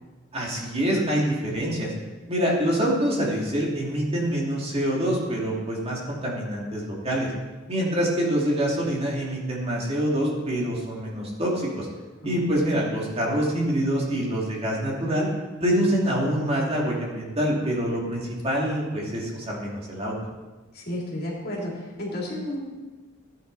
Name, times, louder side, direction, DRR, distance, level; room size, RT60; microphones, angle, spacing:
voice 1, 0.3-1.9 2.3-7.3 7.7-11.9 12.2-15.3 15.6-20.1, equal, 30° right, -3 dB, 2.5 m, -25 dB
voice 2, 12.2-12.7 20.7-22.6, left 1 dB, 50° left, -3 dB, 3.2 m, -32 dB
15.5 x 8.9 x 4.0 m, 1.2 s
head